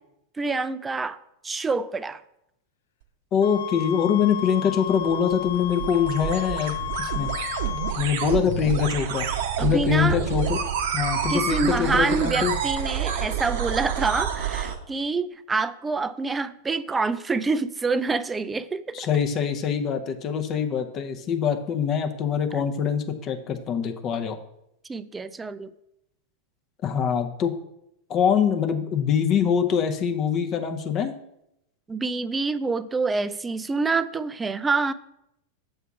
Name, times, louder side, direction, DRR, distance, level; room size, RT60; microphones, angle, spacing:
voice 1, 0.4-1.2 1.4-2.2 9.6-10.2 11.3-19.0 24.9-25.7 31.9-34.9, right 4 dB, 15° right, 14 dB, 0.3 m, -26 dB
voice 2, 3.3-7.3 8.0-9.3 9.6-10.6 10.9-12.5 18.9-24.4 26.8-27.5 28.1-31.1, left 7 dB, 35° left, 6 dB, 0.7 m, -24 dB
sound 1, 3.4-8.0, left 11 dB, 60° left, 0.4 m, -33 dB
sound 2, 4.9-14.8, right 8 dB, 55° right, 0.7 m, -28 dB
7.0 x 3.5 x 5.8 m, 0.80 s
figure-of-eight pair, 90°, 0 cm